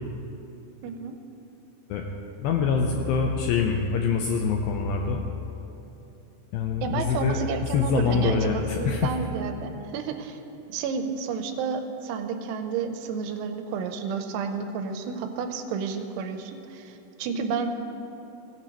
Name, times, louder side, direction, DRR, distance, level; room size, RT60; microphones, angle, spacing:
voice 1, 0.8-1.2 6.8-10.4 10.7-17.7, right 6 dB, 85° right, 7 dB, 2.7 m, -31 dB
voice 2, 2.4-5.2 6.5-7.4 7.7-9.2, left 5 dB, 90° left, 2 dB, 2.2 m, -25 dB
17.0 x 9.9 x 3.0 m, 2.9 s
omnidirectional pair, 4.9 m